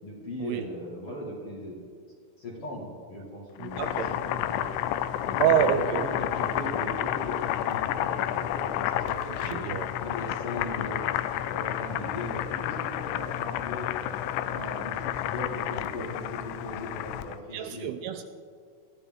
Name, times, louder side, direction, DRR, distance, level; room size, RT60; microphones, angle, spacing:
voice 1, 0.0-1.8 2.4-4.7 5.3-9.7 10.0-11.1 11.5-14.2 14.5-17.9, left 1 dB, 45° left, -3 dB, 2.1 m, -38 dB
Boiling, 3.6-17.4, left 12 dB, 90° left, 2.9 m, -30 dB
voice 2, 3.6-4.2 5.4-6.1 9.5-9.9 17.5-18.2, right 10 dB, 80° right, 8 dB, 2.4 m, -27 dB
21.5 x 14.0 x 3.6 m, 2.1 s
omnidirectional pair, 5.0 m